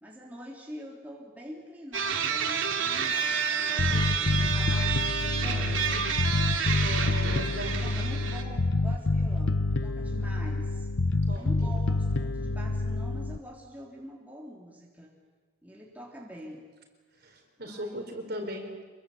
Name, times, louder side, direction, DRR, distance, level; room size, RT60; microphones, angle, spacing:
voice 1, 0.0-5.9 7.8-10.9 11.3-15.1 15.6-16.7 17.6-18.1, equal, 10° right, -2 dB, 3.4 m, -45 dB
sound 1, 1.9-8.4, right 6 dB, 75° right, 2.6 m, -29 dB
Bass guitar, 3.8-13.4, left 2 dB, 70° left, 1.0 m, -28 dB
voice 2, 6.8-8.0 11.2-11.7 17.2-18.9, equal, 50° right, 3 dB, 4.8 m, -38 dB
27.5 x 22.5 x 8.5 m, 1.4 s
head